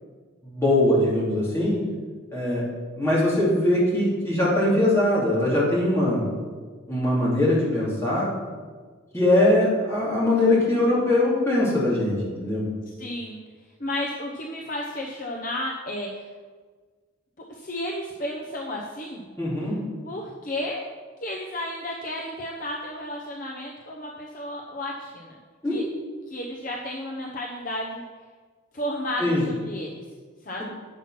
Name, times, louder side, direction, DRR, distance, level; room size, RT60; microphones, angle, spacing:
voice 1, 0.4-1.8 2.3-2.6 3.0-6.2 6.9-8.3 9.1-12.7 19.4-19.8 25.6-25.8 29.2-29.4, left 1 dB, 10° left, -8 dB, 3.0 m, -21 dB
voice 2, 13.0-13.4 13.8-16.2 17.5-19.3 20.1-20.8 21.2-25.4 25.7-25.8 26.3-28.0 28.7-30.0 30.5-30.6, left 1 dB, 40° left, -1 dB, 0.8 m, -32 dB
9.0 x 5.9 x 5.8 m, 1.5 s
head